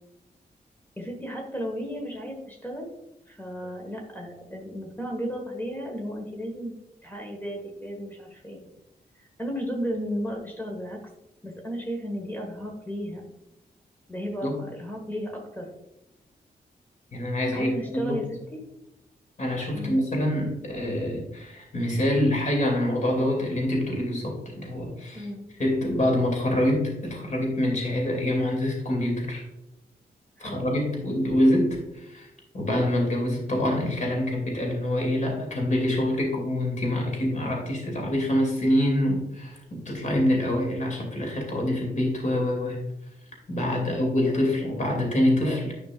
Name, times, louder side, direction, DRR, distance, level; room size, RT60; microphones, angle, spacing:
voice 1, 1.0-2.9 3.3-6.7 7.0-8.6 9.2-11.0 11.4-13.2 14.1-15.7 17.5-18.2 18.5-18.6 19.7-20.0 25.1-25.4 30.4-30.6 43.8-43.9, equal, 10° left, 1 dB, 1.6 m, -34 dB
voice 2, 17.1-18.2 19.4-25.3 25.6-29.4 30.4-32.3 32.5-42.8 43.5-45.7, left 1 dB, 50° left, 0 dB, 2.7 m, -25 dB
10.5 x 5.3 x 2.5 m, 0.88 s
wide cardioid pair, 110°, 17 cm